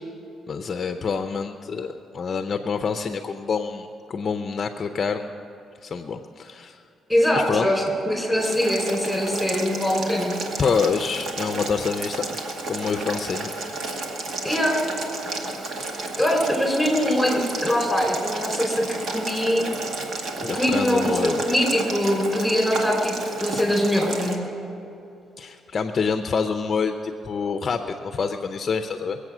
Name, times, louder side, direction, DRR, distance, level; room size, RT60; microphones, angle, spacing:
voice 1, 0.5-5.3 5.8-6.8 7.3-7.7 10.6-12.2 12.7-13.5 15.8-16.2 20.4-21.5 25.4-29.2, left 5 dB, 45° left, 7 dB, 0.6 m, -27 dB
voice 2, 7.1-10.3 14.4-14.8 16.2-19.6 20.4-24.4, equal, ahead, 1 dB, 4.1 m, -22 dB
Boiling, 8.4-24.3, right 2 dB, 65° right, 1.8 m, -32 dB
22.5 x 8.2 x 6.2 m, 2.8 s
cardioid pair, 90°, 0 cm